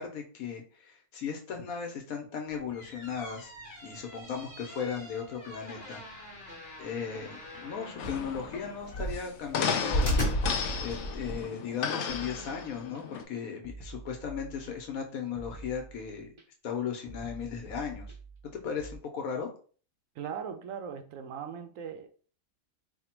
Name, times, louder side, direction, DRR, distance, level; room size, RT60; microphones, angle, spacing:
voice 1, 0.0-3.5 3.8-6.0 6.8-10.2 10.8-16.3 16.6-18.1 18.5-19.5, left 6 dB, 85° left, 1.3 m, -36 dB
sound 1, 2.5-11.4, equal, 30° left, 1.2 m, -35 dB
sound 2, 8.0-13.2, left 6 dB, 65° left, 0.8 m, -34 dB
sound 3, 12.1-13.0 13.6-15.0 15.4-16.4 17.1-19.0, right 3 dB, 35° right, 0.5 m, -47 dB
voice 2, 20.2-22.1, right 7 dB, 75° right, 1.0 m, -39 dB
3.4 x 2.2 x 4.3 m
omnidirectional pair, 1.4 m